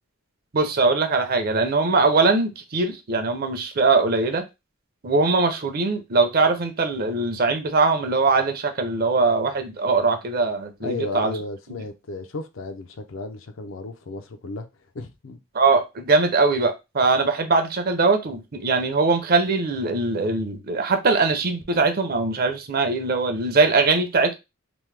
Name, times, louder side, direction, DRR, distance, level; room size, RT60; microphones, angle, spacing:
voice 1, 0.5-4.4 5.0-11.3 15.5-24.3, right 3 dB, 45° right, 0.5 m, -21 dB
voice 2, 10.8-14.7 14.9-15.4, left 2 dB, 65° left, 0.5 m, -33 dB
3.0 x 2.0 x 3.2 m
head